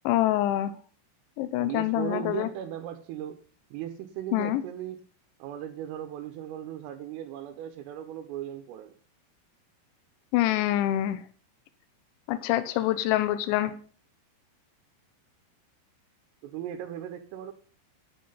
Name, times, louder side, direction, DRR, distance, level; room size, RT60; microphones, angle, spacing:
voice 1, 0.0-0.7 1.4-2.5 4.3-4.6 10.3-11.2 12.3-13.7, left 14 dB, 75° left, 10 dB, 3.1 m, -25 dB
voice 2, 1.6-3.4 3.7-5.0 5.4-9.0 16.4-17.5, right 11 dB, 85° right, 5 dB, 3.5 m, -37 dB
11.5 x 8.6 x 5.5 m, 0.43 s
omnidirectional pair, 5.7 m